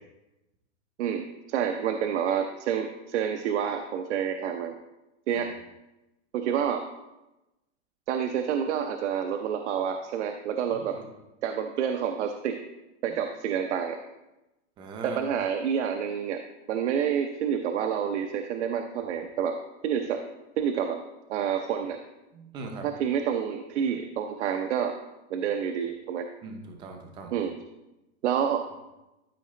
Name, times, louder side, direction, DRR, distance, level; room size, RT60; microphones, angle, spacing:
voice 1, 1.5-4.8 5.3-5.5 6.3-6.8 8.1-10.9 11.4-12.6 13.0-14.0 15.0-16.4 16.7-19.5 19.8-20.2 20.6-21.0 21.3-22.0 22.8-24.9 25.3-26.3 27.3-27.5 28.2-28.6, right 8 dB, 70° right, 5 dB, 0.7 m, -28 dB
voice 2, 14.8-15.2 22.3-22.9 26.4-27.3, right 4 dB, 15° right, 3 dB, 0.5 m, -40 dB
12.5 x 4.8 x 3.2 m, 0.99 s
supercardioid pair, 165°, 36 cm